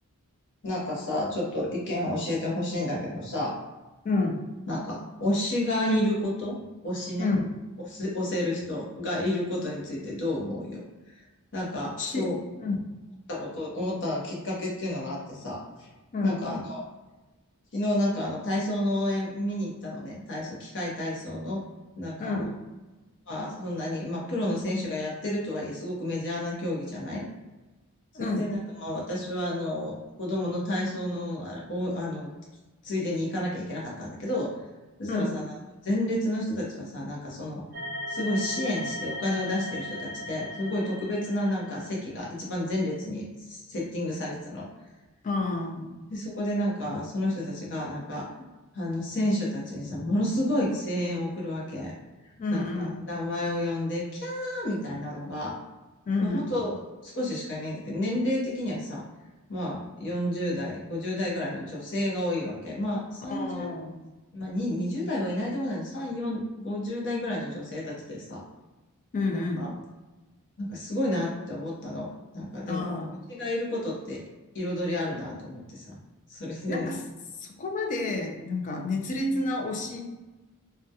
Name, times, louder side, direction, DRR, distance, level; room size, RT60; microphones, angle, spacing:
voice 1, 0.6-3.6 4.7-6.6 6.8-7.3 7.8-11.2 11.5-12.3 13.3-15.9 16.2-16.8 17.7-21.6 22.0-22.5 23.3-27.2 28.1-32.3 32.8-34.5 35.0-35.6 35.8-37.6 38.1-44.7 46.1-48.4 48.7-51.9 52.5-55.5 56.2-56.7 57.0-59.0 59.5-63.7 64.3-68.4 69.3-69.7 70.6-72.9 73.3-74.2 74.5-76.0 76.3-76.9, left 1 dB, 55° left, -4 dB, 0.7 m, -30 dB
voice 2, 4.0-4.4 7.2-7.4 12.0-12.3 12.6-12.8 16.1-16.4 22.2-22.5 28.1-28.4 35.1-35.3 45.2-45.9 52.4-53.0 56.1-56.5 63.3-64.0 69.1-69.7 72.7-73.2 76.7-77.0 77.4-80.0, left 3 dB, 35° left, 2 dB, 0.3 m, -29 dB
sound 1, 37.7-42.0, left 1 dB, 40° right, 0.5 m, -37 dB
2.2 x 2.1 x 2.7 m, 1.2 s
head